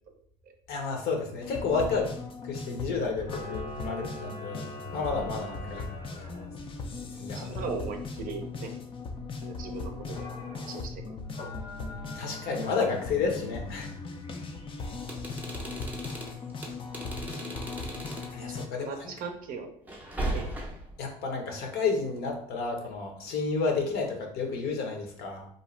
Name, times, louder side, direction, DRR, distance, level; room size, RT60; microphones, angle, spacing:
voice 1, 0.7-2.1 2.4-5.8 7.1-7.6 12.2-13.9 18.3-19.1 21.0-25.5, left 4 dB, 55° left, 1 dB, 0.8 m, -31 dB
sound 1, 1.4-18.7, left 4 dB, 25° left, 0.4 m, -38 dB
Camera, 3.2-6.5 10.0-10.8 11.3-13.1, left 1 dB, 90° left, 0.9 m, -43 dB
voice 2, 7.3-8.7 9.4-11.2 14.8-14.9 16.2-16.4 18.4-19.7 20.3-20.5, right 5 dB, 45° right, 5 dB, 0.6 m, -39 dB
sound 2, 15.0-18.4 19.9-21.0, right 1 dB, 10° right, 0.7 m, -37 dB
2.6 x 2.1 x 3.1 m, 0.63 s
hypercardioid pair, 85°, 20 cm